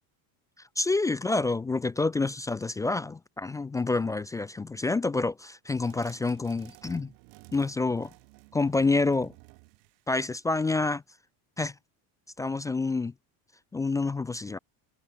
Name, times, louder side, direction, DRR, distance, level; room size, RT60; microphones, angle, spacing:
voice 1, 0.8-7.1 7.5-8.1 8.5-9.3 10.1-11.0 11.6-11.7 12.4-13.1 13.7-14.6, left 3 dB, 10° left, 0.3 m, -28 dB
sound 1, 5.7-10.8, right 39 dB, 75° right, 5.4 m, -54 dB
cardioid pair, 175°, 47 cm